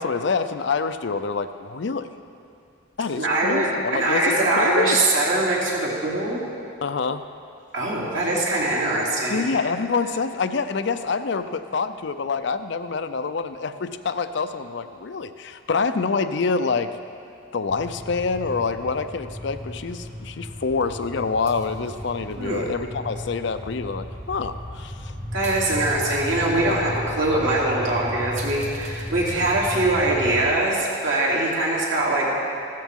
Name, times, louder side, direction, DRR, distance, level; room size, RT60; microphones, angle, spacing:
voice 1, 0.0-2.1 3.0-5.0 6.8-7.3 9.3-16.9 17.5-25.1 26.6-26.8, left 4 dB, 60° left, 10 dB, 0.5 m, -26 dB
voice 2, 3.2-6.4 7.7-9.4 22.4-22.7 25.3-32.3, right 2 dB, 70° right, -5 dB, 3.0 m, -22 dB
sound 1, 17.7-30.4, equal, 35° right, 1.3 m, -35 dB
15.5 x 13.0 x 3.7 m, 2.4 s
head